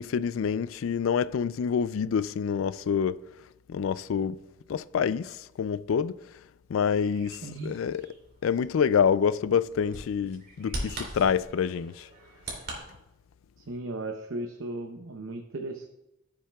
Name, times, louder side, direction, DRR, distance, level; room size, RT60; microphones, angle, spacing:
voice 1, 0.0-3.2 3.7-4.4 4.7-6.2 6.7-8.1 8.4-12.1, left 7 dB, 85° left, 0.3 m, -27 dB
Bird vocalization bird call bird song, 6.7-12.8, right 1 dB, 50° right, 2.8 m, -42 dB
voice 2, 7.4-7.7 13.7-15.9, right 2 dB, 85° right, 0.8 m, -36 dB
15.5 x 7.2 x 2.3 m
head